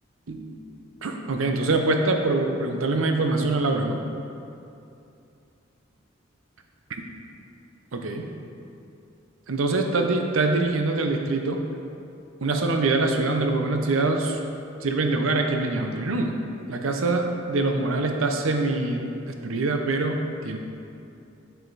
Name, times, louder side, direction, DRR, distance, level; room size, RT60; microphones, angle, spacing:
voice 1, 0.3-0.6 1.0-4.0 7.9-8.3 9.5-11.6 12.4-14.4 14.8-16.4 16.7-19.1 19.4-20.6, right 2 dB, 90° right, 4 dB, 0.7 m, -24 dB
7.8 x 4.8 x 4.0 m, 2.6 s
head